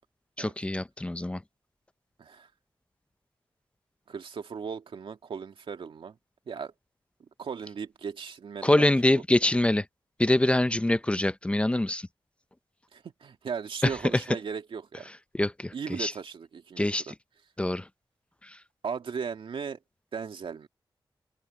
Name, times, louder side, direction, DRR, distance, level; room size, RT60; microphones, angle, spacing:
voice 1, 0.4-1.4 8.6-9.8 10.2-12.1 13.8-13.9 15.4-15.7 16.0-16.1 16.8-17.0 17.6-17.8, left 1 dB, 15° left, 0.5 m, -24 dB
voice 2, 4.1-6.2 6.5-6.7 7.4-9.2 12.9-15.1 15.7-17.1 18.8-19.8 20.1-20.7, right 6 dB, 85° right, 2.4 m, -37 dB
wide cardioid pair, 135°, 9 cm